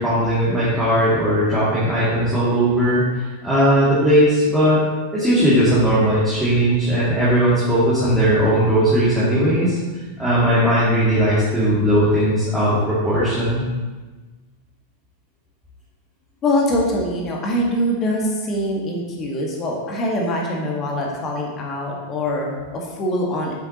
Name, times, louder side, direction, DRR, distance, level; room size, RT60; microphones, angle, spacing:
voice 1, 0.0-4.9 5.1-9.8 10.2-13.7, equal, 5° right, -11 dB, 2.4 m, -18 dB
voice 2, 16.4-23.5, left 1 dB, 30° left, -1 dB, 1.7 m, -23 dB
8.0 x 7.3 x 2.9 m, 1.3 s
figure-of-eight pair, 90°, 0 cm